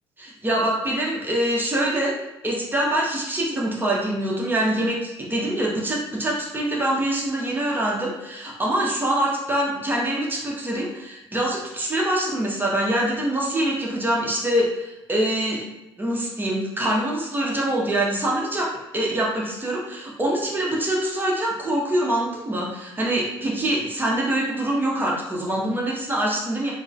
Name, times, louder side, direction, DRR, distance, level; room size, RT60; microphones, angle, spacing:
voice 1, 0.2-2.1 2.4-15.6 16.0-26.7, right 1 dB, 15° right, -3 dB, 0.9 m, -24 dB
3.6 x 2.1 x 2.5 m, 0.96 s
figure-of-eight pair, 50°, 13 cm